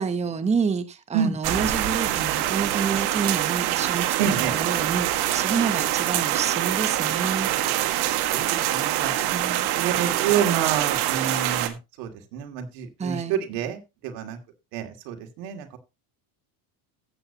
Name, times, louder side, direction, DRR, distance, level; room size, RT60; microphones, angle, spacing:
voice 1, 0.0-7.5 9.3-9.7 13.0-13.4, right 5 dB, 15° right, 10 dB, 0.9 m, -28 dB
sound 1, 1.4-11.7, right 13 dB, 65° right, 1.7 m, -25 dB
voice 2, 4.2-4.5 8.3-8.4 8.7-9.1 9.8-14.4 14.7-15.8, right 8 dB, 85° right, 5 dB, 2.7 m, -28 dB
14.0 x 8.7 x 2.9 m, 0.25 s
cardioid pair, 135°, 42 cm